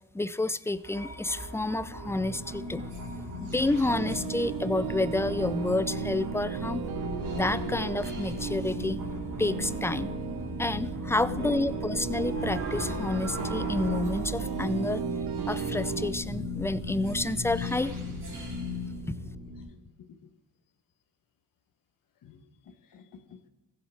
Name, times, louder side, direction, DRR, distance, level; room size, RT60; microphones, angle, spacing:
voice 1, 0.1-2.8 3.4-6.8 7.3-9.0 9.4-10.1 10.6-15.0 15.5-17.9 19.1-19.2, left 2 dB, 5° left, 16 dB, 0.4 m, -29 dB
sound 1, 0.7-19.6, left 1 dB, 60° right, 4.5 m, -36 dB
sound 2, 3.8-16.1, right 10 dB, 80° right, 0.9 m, -36 dB
voice 2, 11.2-11.5 13.2-13.7 19.7-20.1 22.2-22.4 22.7-23.5, left 8 dB, 65° left, 8 dB, 1.3 m, -49 dB
15.5 x 7.6 x 4.5 m, 1.0 s
cardioid pair, 75°, 36 cm